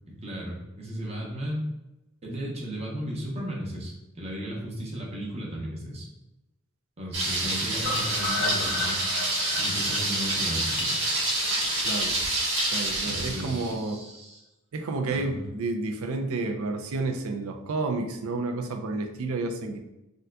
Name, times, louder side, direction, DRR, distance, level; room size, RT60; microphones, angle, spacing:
voice 1, 0.1-1.6 2.2-6.1 7.0-9.0 9.6-11.0 13.0-14.4 15.1-15.4, equal, 30° right, -3 dB, 0.8 m, -35 dB
Thunder, 7.1-13.7, right 2 dB, 60° right, 1.0 m, -28 dB
sound 1, 7.8-11.8 12.2-12.3 12.6-12.7 13.0-13.1, left 3 dB, 70° left, 1.2 m, -34 dB
sound 2, 7.9-8.1 10.8-11.3 11.6-12.3 12.6-12.8, left 3 dB, 25° left, 0.3 m, -36 dB
voice 2, 11.8-12.2 12.7-14.0 14.7-19.8, right 3 dB, 80° right, 5 dB, 0.4 m, -30 dB
3.6 x 2.7 x 2.2 m, 0.93 s
head